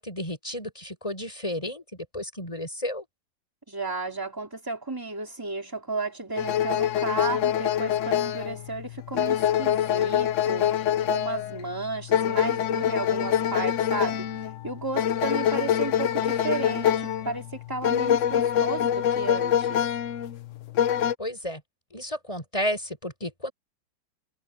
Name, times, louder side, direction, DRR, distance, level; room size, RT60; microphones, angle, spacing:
voice 1, 0.0-3.0 21.2-21.6 21.9-23.5, left 1 dB, 15° left, 6.8 m, -32 dB
voice 2, 3.7-10.7 11.1-14.3 14.6-19.9, right 3 dB, 10° right, 3.2 m, -33 dB
sound 1, 6.4-21.1, left 10 dB, 85° left, 0.6 m, -25 dB
omnidirectional pair, 2.1 m